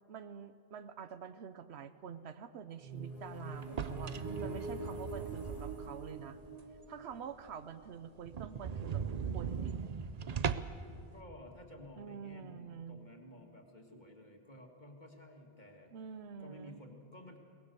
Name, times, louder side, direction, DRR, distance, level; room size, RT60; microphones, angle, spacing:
voice 1, 0.1-6.4 6.9-9.7 12.0-13.0 15.9-16.8, right 7 dB, 90° right, 11 dB, 1.0 m, -47 dB
sound 1, 2.8-8.5, right 2 dB, 15° right, 4.0 m, -45 dB
sound 2, 3.6-6.2 6.6-6.7 7.1-7.2 7.5-7.6 7.8-7.9 8.3-10.9, right 6 dB, 45° right, 0.7 m, -38 dB
voice 2, 11.1-15.9 16.4-17.4, left 1 dB, 45° left, 2 dB, 2.2 m, -53 dB
23.0 x 18.5 x 6.9 m, 2.4 s
omnidirectional pair, 1.1 m